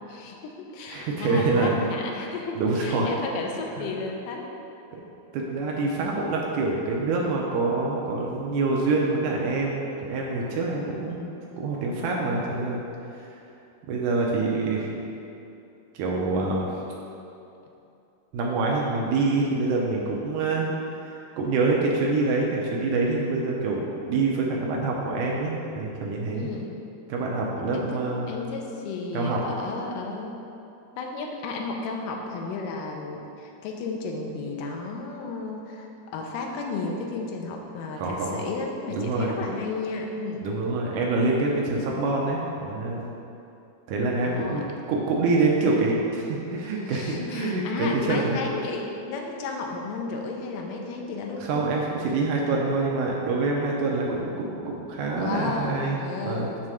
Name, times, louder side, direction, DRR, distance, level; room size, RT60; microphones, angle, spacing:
voice 1, 0.1-4.5 26.3-26.8 27.7-30.4 31.0-40.5 44.2-44.6 46.9-51.7 55.2-56.6, left 3 dB, 80° left, 1 dB, 2.0 m, -33 dB
voice 2, 0.9-1.7 2.5-3.1 3.8-3.9 5.3-11.2 11.6-12.8 13.2-13.3 13.9-14.9 16.0-16.7 18.3-20.7 21.0-26.5 27.1-28.3 29.1-29.4 38.0-38.4 38.9-39.3 40.4-43.0 43.9-48.4 51.4-56.5, right 3 dB, 85° right, -2 dB, 1.7 m, -26 dB
7.2 x 3.2 x 6.2 m, 2.8 s
omnidirectional pair, 4.3 m